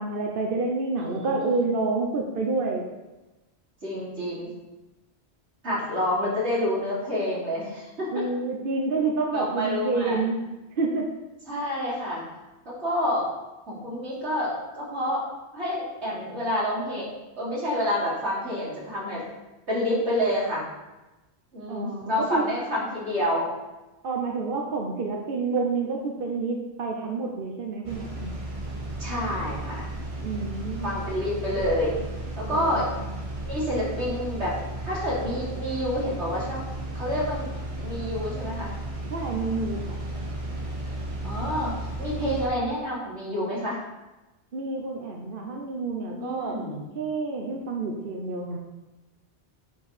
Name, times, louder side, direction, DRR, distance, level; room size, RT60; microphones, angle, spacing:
voice 1, 0.0-2.9 8.1-10.4 10.8-11.1 21.7-22.4 24.0-28.3 30.2-30.9 32.5-33.1 39.1-40.0 44.5-46.6 46.9-48.6, right 3 dB, 55° right, 0 dB, 1.1 m, -28 dB
voice 2, 1.0-1.7 3.8-4.5 5.6-8.2 9.3-10.3 11.5-12.2 12.6-13.3 13.7-15.3 15.5-17.1 17.4-19.2 19.7-20.7 21.5-23.5 29.0-29.9 30.8-31.9 32.4-32.9 33.4-34.6 34.8-36.6 36.9-37.5 37.8-38.7 41.2-41.7 42.0-43.8 46.1-46.8, left 1 dB, 85° right, -7 dB, 3.4 m, -28 dB
sound 1, 27.8-42.5, right 1 dB, 30° right, 1.6 m, -34 dB
10.0 x 4.7 x 4.9 m, 1.1 s
omnidirectional pair, 1.1 m